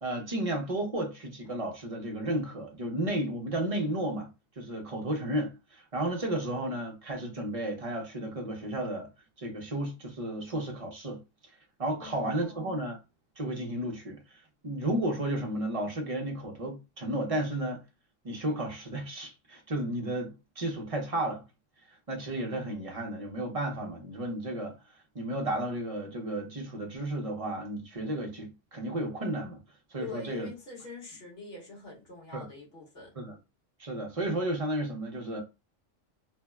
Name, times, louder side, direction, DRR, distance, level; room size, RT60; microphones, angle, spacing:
voice 1, 0.0-4.3 4.6-9.1 9.4-11.2 11.8-13.0 13.4-14.2 14.6-17.8 18.2-21.4 22.1-24.8 25.1-29.6 29.9-30.5 32.3-32.5 33.2-33.3 33.8-35.4, right 1 dB, 35° right, 0.6 m, -33 dB
voice 2, 12.0-12.8 30.0-33.2, left 4 dB, 50° left, 1.5 m, -44 dB
3.5 x 2.1 x 2.2 m
omnidirectional pair, 1.3 m